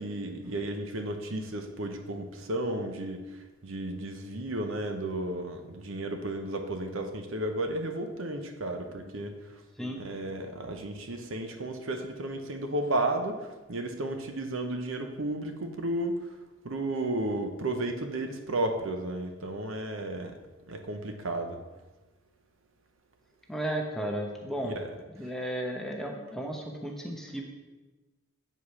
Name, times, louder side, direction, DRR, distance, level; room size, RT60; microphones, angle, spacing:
voice 1, 0.0-3.2 3.6-9.3 10.0-13.4 13.7-16.2 16.6-20.3 20.7-21.6 24.6-24.9, right 1 dB, 65° right, 6 dB, 0.8 m, -33 dB
voice 2, 23.5-24.7 25.1-27.4, right 1 dB, ahead, 1 dB, 0.8 m, -34 dB
7.9 x 4.9 x 5.6 m, 1.2 s
head